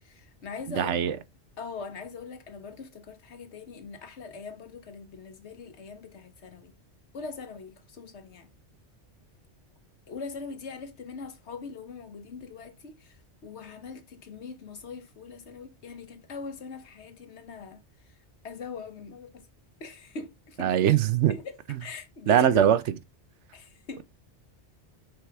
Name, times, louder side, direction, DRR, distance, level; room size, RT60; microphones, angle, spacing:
voice 1, 0.0-1.0 1.6-6.7 7.1-8.5 10.1-13.2 13.4-17.8 18.4-19.5 19.8-20.7 21.3-22.7 23.5-24.0, left 4 dB, 75° left, 1.3 m, -41 dB
voice 2, 0.7-1.2 20.6-21.3 22.3-22.8, right 10 dB, 85° right, 1.0 m, -21 dB
6.7 x 4.8 x 3.4 m
omnidirectional pair, 1.2 m